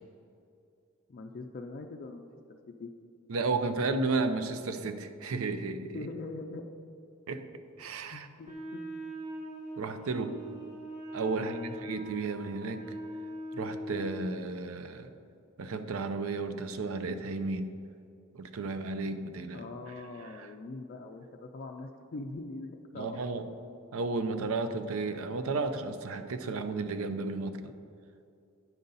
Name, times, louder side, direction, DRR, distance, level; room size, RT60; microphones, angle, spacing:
voice 1, 1.1-2.9 5.9-6.6 8.1-8.8 11.4-11.8 19.5-23.4, left 3 dB, 45° left, 3 dB, 0.4 m, -42 dB
voice 2, 3.3-6.1 7.3-8.3 9.8-10.4 11.1-13.0 13.5-15.1 15.6-17.7 18.3-20.5 22.9-23.5 23.9-27.7, right 3 dB, 75° right, 9 dB, 0.5 m, -33 dB
Wind instrument woodwind instrument, 8.4-14.3, right 1 dB, 35° right, 1.4 m, -41 dB
9.5 x 5.5 x 3.9 m, 2.5 s
head